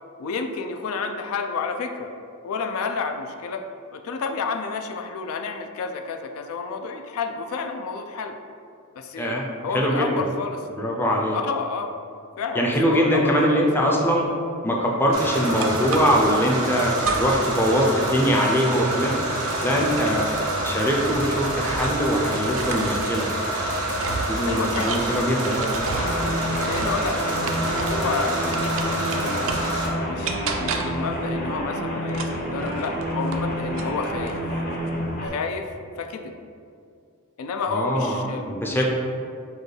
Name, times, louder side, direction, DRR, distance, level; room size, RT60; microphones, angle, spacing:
voice 1, 0.2-2.1 2.4-3.7 3.9-8.4 9.0-9.3 9.6-10.6 11.4-11.9 12.4-13.7 24.5-25.1 26.2-26.4 26.6-29.0 30.1-34.4 35.2-35.7 36.0-36.3 37.4-38.8, left 5 dB, 75° left, 5 dB, 0.4 m, -30 dB
voice 2, 9.7-10.1 10.7-11.4 12.5-14.3 14.6-19.1 19.6-23.3 24.0-25.7 37.7-38.8, equal, 10° left, -1 dB, 0.4 m, -22 dB
sound 1, 15.1-29.9, right 1 dB, 85° right, 1.0 m, -27 dB
sound 2, 15.6-16.4 17.0-17.6 17.9-22.1 22.5-28.1 28.5-29.8 30.2-31.1 32.1-33.5 33.8-34.4, right 4 dB, 65° right, 0.4 m, -33 dB
sound 3, 25.8-35.3, equal, 45° left, 0.7 m, -29 dB
6.4 x 2.3 x 3.2 m, 2.4 s
head